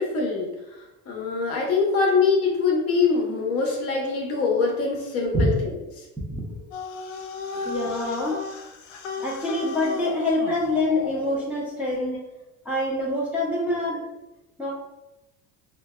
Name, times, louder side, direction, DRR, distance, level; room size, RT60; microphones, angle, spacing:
voice 1, 0.0-6.1 8.0-8.2, left 4 dB, 40° left, -1 dB, 0.8 m, -24 dB
voice 2, 6.3-6.6 7.5-8.4 9.2-12.2 12.6-14.0 14.6-14.7, left 1 dB, 5° right, -7 dB, 0.6 m, -25 dB
sound 1, 6.7-11.4, left 4 dB, 80° left, 0.6 m, -35 dB
3.8 x 2.2 x 2.3 m, 0.98 s
supercardioid pair, 125°, 39 cm